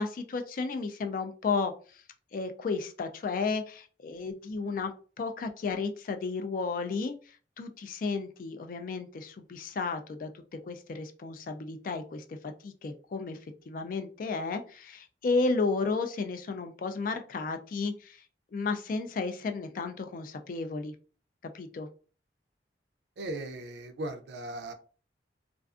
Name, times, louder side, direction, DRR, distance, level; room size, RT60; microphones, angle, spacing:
voice 1, 0.0-1.7 2.3-4.9 5.2-7.2 7.6-13.4 13.7-18.2 18.5-20.9 21.5-21.9, left 4 dB, 50° left, 7 dB, 0.3 m, -33 dB
voice 2, 23.2-24.7, right 1 dB, 65° right, 7 dB, 0.4 m, -37 dB
2.4 x 2.3 x 2.3 m, 0.39 s
head